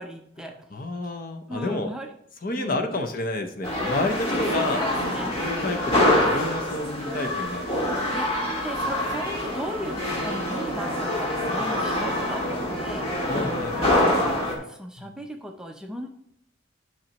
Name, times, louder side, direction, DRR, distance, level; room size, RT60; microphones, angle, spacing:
voice 1, 0.0-0.6 1.5-2.1 2.6-3.0 4.3-5.3 5.7-6.0 8.1-13.3 13.7-16.1, equal, 5° right, 2 dB, 0.5 m, -37 dB
voice 2, 0.7-1.9 2.4-4.8 5.4-7.9 13.3-13.9 15.0-15.1, left 2 dB, 45° left, 6 dB, 0.8 m, -30 dB
sound 1, 3.6-14.6, left 1 dB, 30° left, 1.9 m, -25 dB
10.5 x 5.7 x 3.0 m, 0.72 s
head